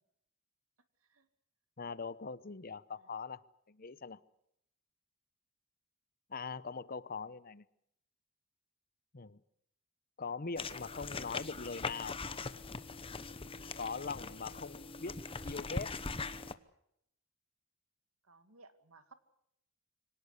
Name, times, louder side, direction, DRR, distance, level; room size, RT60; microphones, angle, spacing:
voice 1, 1.8-3.4 3.7-4.2 6.3-7.6 9.1-9.4 10.2-12.2 13.8-15.9, left 4 dB, 45° left, 17 dB, 0.8 m, -42 dB
sound 1, 10.6-16.5, left 4 dB, 25° left, 1.0 m, -41 dB
voice 2, 18.3-19.1, right 3 dB, 75° right, 10 dB, 2.2 m, -60 dB
25.5 x 18.0 x 8.2 m, 0.75 s
head